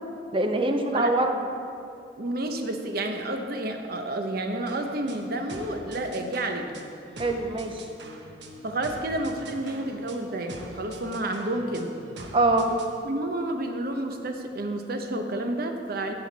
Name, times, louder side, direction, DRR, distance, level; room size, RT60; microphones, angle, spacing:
voice 1, 0.3-1.4 7.2-7.8 12.3-12.8, right 2 dB, 30° right, 5 dB, 0.7 m, -23 dB
voice 2, 2.2-6.8 8.6-11.9 13.0-16.1, right 1 dB, 60° right, 5 dB, 0.9 m, -30 dB
sound 1, 4.7-13.0, right 1 dB, 90° right, 1.0 m, -44 dB
16.0 x 5.8 x 4.1 m, 2.5 s
head